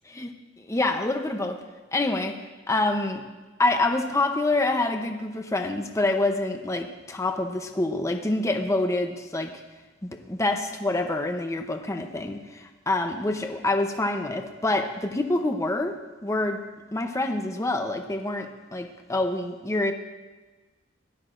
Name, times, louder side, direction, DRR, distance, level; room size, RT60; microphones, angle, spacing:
voice 1, 0.6-1.6 1.9-2.4 2.7-3.2 3.6-9.5 10.3-16.0 16.2-16.6 16.9-19.9, left 2 dB, 15° left, 5 dB, 0.7 m, -26 dB
17.5 x 12.0 x 2.6 m, 1.2 s
head